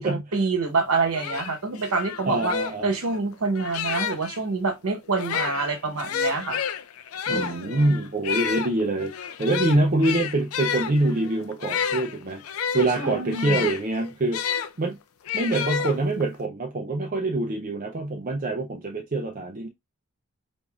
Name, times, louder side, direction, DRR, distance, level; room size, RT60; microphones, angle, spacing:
voice 1, 0.0-2.5 2.8-6.6 7.3-7.9 13.0-13.6, right 4 dB, 85° right, 0.9 m, -27 dB
sound 1, 0.8-0.9 1.1-4.4 5.1-14.7 15.3-16.4, left 7 dB, 80° left, 0.5 m, -30 dB
voice 2, 2.3-2.9 7.3-9.1 9.4-12.4 12.7-15.0 15.3-19.7, right 2 dB, 35° right, 0.5 m, -25 dB
5.2 x 2.6 x 2.4 m
head